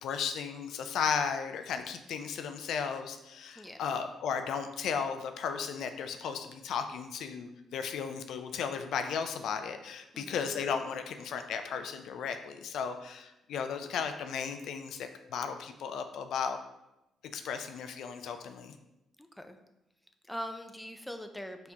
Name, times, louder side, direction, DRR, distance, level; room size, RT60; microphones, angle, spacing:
voice 1, 0.0-16.6 17.3-18.7, left 6 dB, 75° left, 7 dB, 0.4 m, -35 dB
voice 2, 19.2-19.6 20.3-21.7, equal, 5° left, 6 dB, 0.4 m, -42 dB
4.3 x 4.2 x 2.8 m, 0.92 s
cardioid pair, 90°, 0 cm